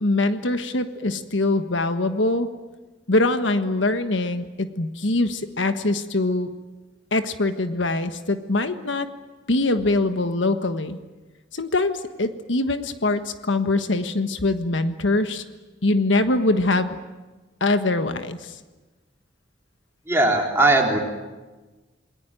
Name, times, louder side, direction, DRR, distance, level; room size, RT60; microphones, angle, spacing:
voice 1, 0.0-2.5 3.1-6.5 7.1-9.1 9.5-11.0 11.5-15.4 15.8-17.0 17.6-18.5, left 2 dB, 80° left, 9 dB, 1.5 m, -23 dB
voice 2, 20.1-21.0, right 2 dB, 15° right, 0 dB, 4.1 m, -19 dB
28.0 x 20.5 x 9.2 m, 1.2 s
head